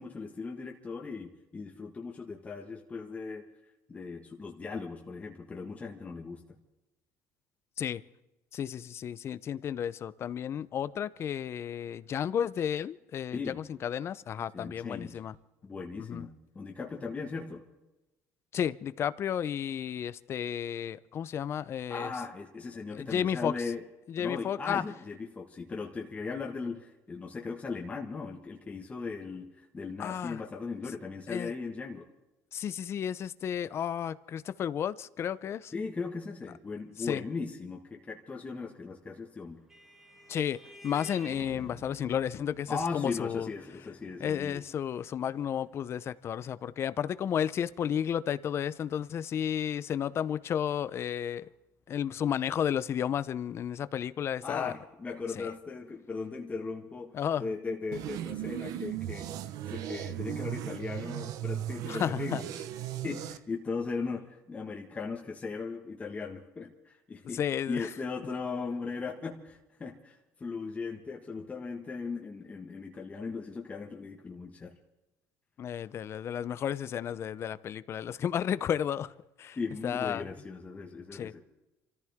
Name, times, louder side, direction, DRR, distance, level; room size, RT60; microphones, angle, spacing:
voice 1, 0.0-3.4 3.9-6.4 13.3-13.6 14.5-15.2 15.6-17.6 21.9-23.8 24.2-32.0 35.7-39.6 42.7-44.6 54.4-59.3 59.7-62.6 63.0-67.4 67.7-74.7 79.6-81.4, left 4 dB, 20° left, 1.7 m, -38 dB
voice 2, 8.5-15.3 16.0-16.2 18.5-22.1 22.9-23.5 24.1-24.8 30.0-30.4 31.3-31.5 32.5-35.7 37.0-37.2 40.3-40.6 40.8-43.5 44.2-51.5 51.9-54.7 55.4-55.5 57.1-57.5 61.9-62.4 67.3-67.9 75.6-79.1 79.4-79.6 79.8-80.2 81.1-81.3, left 9 dB, 45° left, 0.7 m, -32 dB
Vehicle horn car horn honking, 39.2-48.1, left 1 dB, 10° right, 2.8 m, -52 dB
sound 1, 57.9-63.4, right 12 dB, 70° right, 1.0 m, -37 dB
27.0 x 14.5 x 3.6 m
cardioid pair, 120°, 6 cm